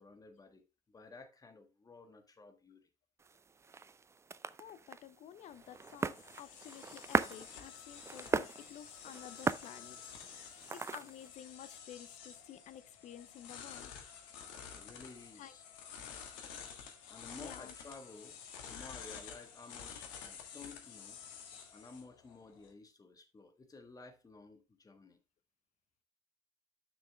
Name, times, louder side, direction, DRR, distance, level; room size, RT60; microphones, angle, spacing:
voice 1, 0.0-2.9 14.8-15.6 17.1-18.4 18.7-21.2 21.7-25.2, left 3 dB, 20° left, 1.5 m, -54 dB
sound 1, 3.2-11.3, right 5 dB, 15° right, 0.4 m, -39 dB
voice 2, 4.6-10.0 10.4-13.9 15.4-15.5 17.4-17.7, left 11 dB, 40° left, 0.7 m, -52 dB
sound 2, 5.5-22.7, left 7 dB, 65° left, 1.5 m, -51 dB
10.5 x 6.0 x 2.3 m
figure-of-eight pair, 60°, 18 cm